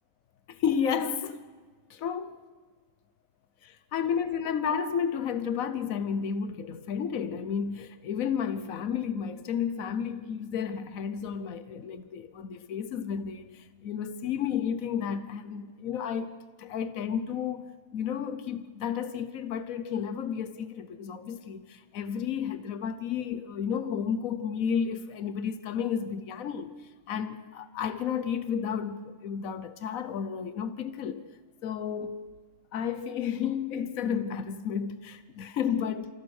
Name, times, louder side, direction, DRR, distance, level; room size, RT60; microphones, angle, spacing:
voice 1, 0.5-1.4 1.9-2.4 3.6-16.3 16.6-31.2 31.6-32.3 32.7-36.1, left 7 dB, 85° left, 1.3 m, -32 dB
28.0 x 15.0 x 6.4 m
omnidirectional pair, 1.4 m